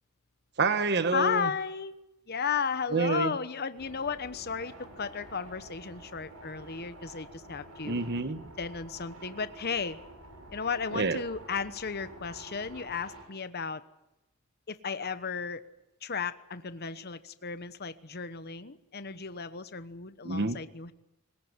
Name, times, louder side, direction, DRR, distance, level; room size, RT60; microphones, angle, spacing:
voice 1, 0.6-1.5 2.9-3.3 7.8-8.5 10.9-11.2 20.2-20.6, right 3 dB, 50° right, 11 dB, 1.2 m, -28 dB
voice 2, 1.1-2.0 2.3-8.0 8.6-10.0 10.5-13.8 14.7-15.6 16.0-20.9, left 6 dB, 50° left, 12 dB, 1.1 m, -34 dB
sound 1, 3.8-13.2, right 1 dB, 75° right, 7.8 m, -49 dB
22.0 x 20.5 x 9.6 m, 0.92 s
head